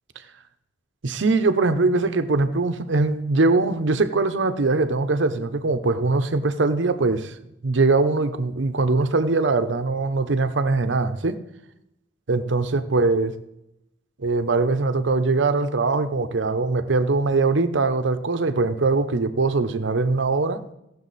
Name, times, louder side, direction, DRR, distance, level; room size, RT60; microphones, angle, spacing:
voice 1, 1.0-7.3 7.6-11.4 12.3-13.3 14.2-20.6, right 3 dB, 75° right, 10 dB, 0.7 m, -22 dB
15.5 x 6.9 x 4.1 m, 0.86 s
head